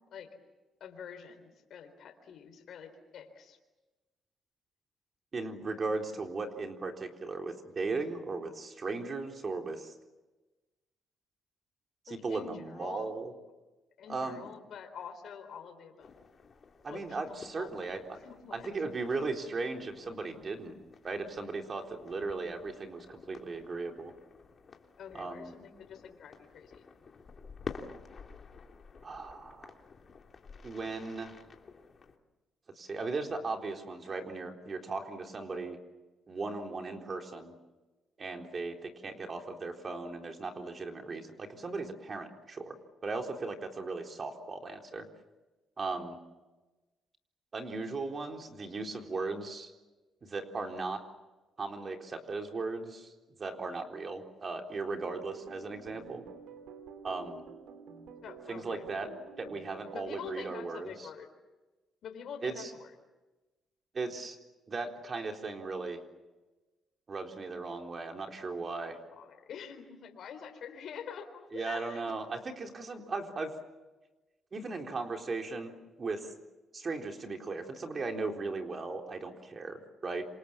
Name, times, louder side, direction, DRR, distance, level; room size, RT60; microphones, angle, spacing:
voice 1, 0.8-3.6 12.1-13.2 14.0-16.1 16.9-17.8 18.2-18.7 20.6-20.8 25.0-26.8 58.2-58.9 59.9-61.3 62.0-62.9 68.8-72.0, left 7 dB, 65° left, 6 dB, 4.0 m, -46 dB
voice 2, 5.3-9.9 12.1-13.3 14.1-14.5 16.8-18.2 18.5-20.8 21.0-24.1 25.1-25.5 29.0-29.7 30.6-31.4 32.8-35.8 36.3-37.5 38.2-42.7 43.0-45.1 45.8-46.2 47.5-49.7 50.2-51.0 51.6-53.1 53.4-56.2 57.0-57.4 58.5-59.1 59.4-60.9 62.4-62.7 63.9-64.4 64.7-66.0 67.1-69.0 71.5-73.5 74.5-76.3 76.7-80.3, right 3 dB, 40° right, 3 dB, 4.0 m, -37 dB
sound 1, 16.0-32.2, left 5 dB, 45° left, 3.0 m, -51 dB
sound 2, 55.0-60.5, right 6 dB, 85° right, 3.0 m, -49 dB
27.5 x 27.0 x 7.4 m, 1.1 s
cardioid pair, 90°, 0 cm